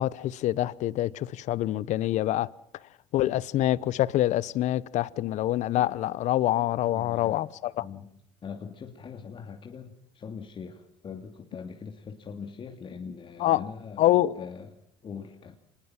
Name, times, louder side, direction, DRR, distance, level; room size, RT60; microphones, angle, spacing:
voice 1, 0.0-2.5 3.1-7.8 13.4-13.6 14.0-14.3, left 14 dB, 60° left, 1.0 m, -26 dB
voice 2, 6.8-7.5 7.8-8.1 8.4-14.7 15.0-15.6, left 6 dB, 40° left, 2.8 m, -42 dB
25.5 x 20.5 x 7.6 m
supercardioid pair, 80°, 13 cm